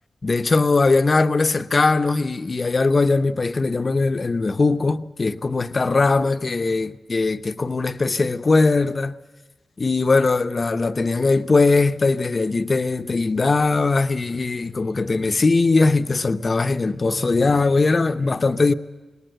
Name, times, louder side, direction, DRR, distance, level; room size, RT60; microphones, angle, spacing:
voice 1, 0.2-9.1 9.8-18.7, left 3 dB, 45° left, 0.7 m, -20 dB
26.0 x 19.0 x 8.0 m
wide cardioid pair, 85°, 0 cm